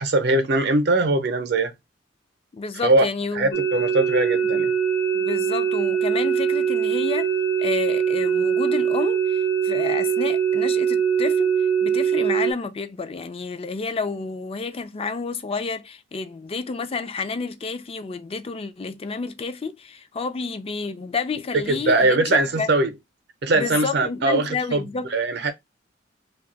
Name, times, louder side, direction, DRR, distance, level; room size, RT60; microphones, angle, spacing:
voice 1, 0.0-1.7 2.8-3.0 3.3-4.7 21.5-22.9 23.4-24.8 25.1-25.5, right 2 dB, 60° right, 0.7 m, -21 dB
voice 2, 2.5-3.6 5.1-7.3 7.6-11.5 11.8-22.7 23.5-25.1, left 4 dB, 30° left, 0.4 m, -30 dB
sound 1, 3.5-12.5, right 7 dB, 60° left, 0.9 m, -22 dB
2.7 x 2.3 x 3.8 m
head